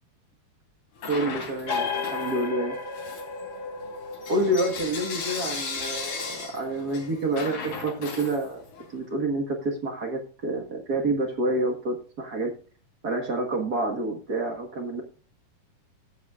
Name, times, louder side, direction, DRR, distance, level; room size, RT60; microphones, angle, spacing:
Bell / Coin (dropping), 1.0-2.5 2.9-8.9, left 4 dB, 80° left, 4.8 m, -36 dB
voice 1, 1.0-2.8 4.3-8.6 8.9-12.5 13.0-15.0, right 2 dB, 50° right, 3 dB, 1.2 m, -28 dB
sound 1, 1.7-8.9, left 4 dB, 45° left, 1.4 m, -36 dB
16.0 x 8.2 x 2.4 m, 0.39 s
omnidirectional pair, 3.9 m